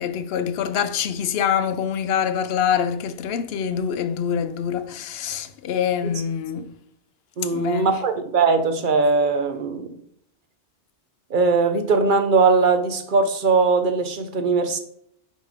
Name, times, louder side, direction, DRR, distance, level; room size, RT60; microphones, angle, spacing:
voice 1, 0.0-6.7 7.5-8.0, left 8 dB, 65° left, 0.8 m, -25 dB
voice 2, 7.4-10.0 11.3-14.8, right 4 dB, 50° right, 0.8 m, -20 dB
5.5 x 5.2 x 3.5 m
omnidirectional pair, 1.2 m